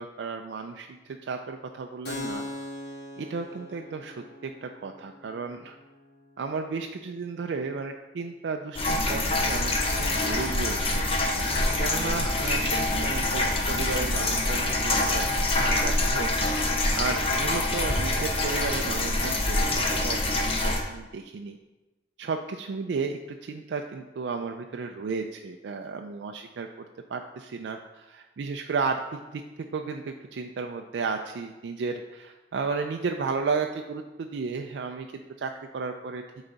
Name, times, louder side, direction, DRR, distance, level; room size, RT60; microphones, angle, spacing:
voice 1, 0.0-2.5 3.2-5.8 6.4-11.1 11.8-16.3 16.9-21.6 22.2-26.7 27.1-29.4 29.7-35.1 35.4-36.2, right 4 dB, 85° right, 4 dB, 0.4 m, -33 dB
Keyboard (musical), 2.0-9.4, left 2 dB, 75° left, 1.3 m, -43 dB
sound 1, 8.8-20.8, left 2 dB, 30° left, 0.8 m, -25 dB
9.0 x 4.0 x 3.9 m, 1.1 s
head